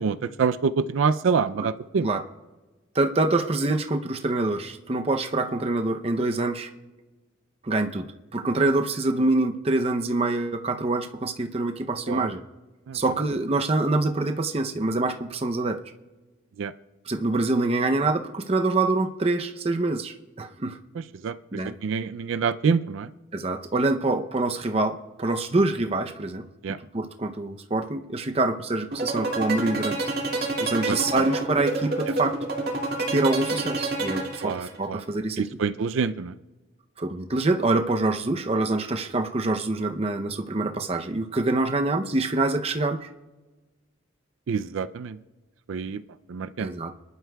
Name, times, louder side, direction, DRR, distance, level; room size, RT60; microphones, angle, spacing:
voice 1, 0.0-2.1 12.1-12.3 12.9-13.0 16.6-16.7 21.2-21.3 21.8-23.1 26.6-26.8 30.9-31.0 34.4-35.0 35.4-36.3 44.5-45.2 45.7-46.0 46.3-46.7, right 5 dB, 75° right, 12 dB, 0.4 m, -26 dB
voice 2, 2.9-6.7 7.6-8.1 8.3-12.4 12.9-15.8 17.1-20.8 21.5-21.8 23.3-26.4 26.9-30.0 30.6-32.4 33.1-35.5 37.0-43.1 46.6-46.9, right 2 dB, 30° right, 6 dB, 0.6 m, -25 dB
sound 1, 28.9-34.9, right 2 dB, 50° right, 2.2 m, -27 dB
26.0 x 11.5 x 2.3 m, 1.2 s
head